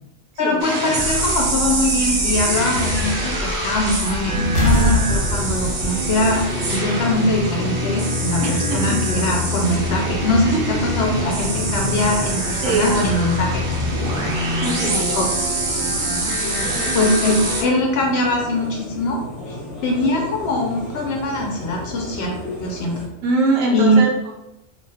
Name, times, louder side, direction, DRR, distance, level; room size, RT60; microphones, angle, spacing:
voice 1, 0.4-6.4 6.7-13.6 15.1-15.3 16.9-19.2 19.5-19.6 19.8-23.0 23.7-24.0, left 1 dB, 65° left, 0 dB, 0.7 m, -22 dB
sound 1, 0.6-17.6, right 1 dB, 55° right, 0.7 m, -24 dB
sound 2, 1.8-7.5, left 1 dB, 85° left, 1.0 m, -25 dB
sound 3, 4.9-23.1, left 1 dB, ahead, 0.8 m, -35 dB
voice 2, 8.4-9.0 10.5-10.6 12.6-13.0 14.6-15.3 23.2-24.3, right 2 dB, 85° right, 0 dB, 1.0 m, -22 dB
2.5 x 2.2 x 3.3 m, 0.89 s
omnidirectional pair, 1.3 m